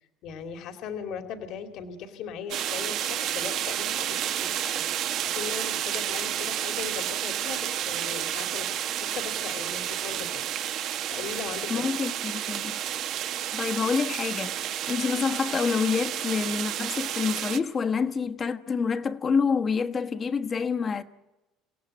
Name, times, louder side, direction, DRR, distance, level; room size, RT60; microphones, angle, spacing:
voice 1, 0.2-10.4 11.1-11.9, left 7 dB, 65° left, 2.6 m, -39 dB
sound 1, 2.5-17.6, right 11 dB, 60° right, 1.3 m, -31 dB
voice 2, 11.7-12.8 13.5-21.0, left 5 dB, 30° left, 1.3 m, -27 dB
27.0 x 17.0 x 8.8 m
supercardioid pair, 105°, 0 cm